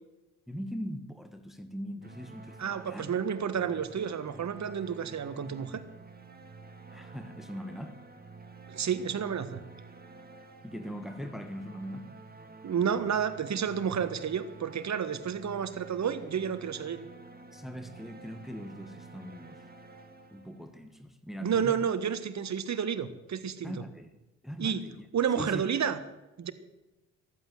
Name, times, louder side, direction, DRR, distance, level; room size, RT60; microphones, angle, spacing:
voice 1, 0.5-3.1 6.9-8.0 10.6-12.2 17.5-19.6 20.3-21.8 23.6-24.1 24.4-25.0 25.4-25.6, equal, ahead, 1.7 m, -41 dB
sound 1, 2.0-20.9, right 3 dB, 25° right, 2.3 m, -50 dB
voice 2, 2.6-5.8 8.7-9.6 12.6-17.0 21.4-23.7 24.6-24.8 25.1-26.0 26.4-26.5, right 7 dB, 45° right, 1.6 m, -30 dB
14.5 x 11.5 x 7.9 m
hypercardioid pair, 50°, 39 cm